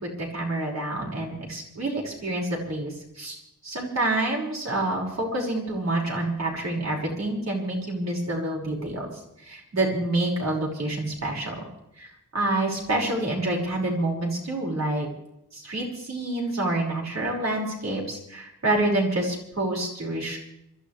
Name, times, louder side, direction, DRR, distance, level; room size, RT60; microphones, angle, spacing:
voice 1, 0.0-3.4 3.6-11.5 12.0-15.1 15.5-20.4, right 2 dB, 55° right, -2 dB, 5.7 m, -28 dB
26.5 x 14.0 x 3.4 m, 0.81 s
wide cardioid pair, 140°, 32 cm